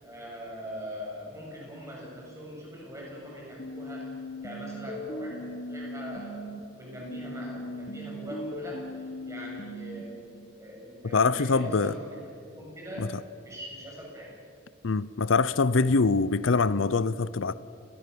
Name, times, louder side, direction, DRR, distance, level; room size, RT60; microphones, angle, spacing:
voice 1, 0.0-4.2 4.4-6.4 6.7-10.3 10.6-12.2 12.6-13.1 13.4-14.3, equal, 15° right, 7.5 m, -41 dB
sound 1, 3.6-6.6 7.0-10.0, left 1 dB, 45° left, 1.5 m, -38 dB
voice 2, 11.1-11.9 13.0-13.1 14.8-17.5, left 4 dB, 75° left, 0.6 m, -24 dB
28.0 x 19.0 x 7.0 m
head